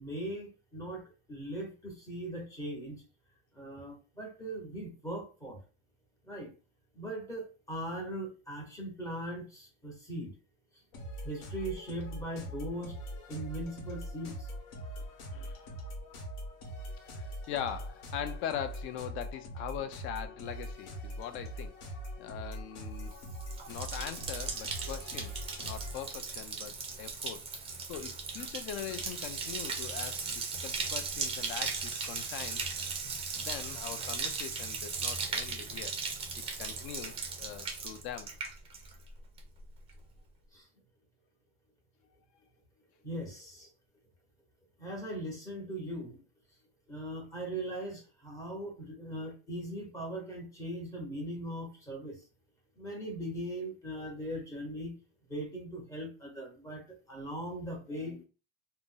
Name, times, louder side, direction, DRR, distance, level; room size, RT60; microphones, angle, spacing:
voice 1, 0.0-3.0 3.5-5.6 6.3-6.5 6.9-10.3 11.2-12.9 13.3-14.5 40.5-40.7 43.0-43.7 44.8-46.2 46.9-52.2 52.8-54.9 55.3-58.2, right 1 dB, 10° left, 0.8 m, -39 dB
sound 1, 10.9-26.1, equal, 75° left, 1.0 m, -42 dB
voice 2, 15.3-15.6 17.1-21.7 22.2-23.1 23.7-27.4 27.9-32.6 33.4-35.9 36.6-38.3 58.0-58.2, left 9 dB, 45° left, 0.4 m, -41 dB
Bathtub (filling or washing), 23.0-39.1 39.4-39.9, right 5 dB, 20° right, 0.4 m, -37 dB
2.5 x 2.0 x 3.6 m
cardioid pair, 160°, 30 cm